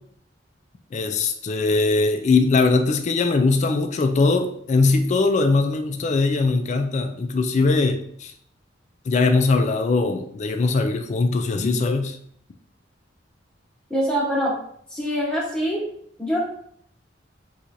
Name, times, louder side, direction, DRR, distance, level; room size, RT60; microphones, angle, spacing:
voice 1, 0.9-8.3 9.1-12.2, left 3 dB, 40° left, 6 dB, 0.3 m, -21 dB
voice 2, 13.9-14.5 14.9-15.8 16.2-16.4, equal, 5° left, -5 dB, 1.0 m, -24 dB
4.3 x 2.4 x 2.6 m, 0.66 s
head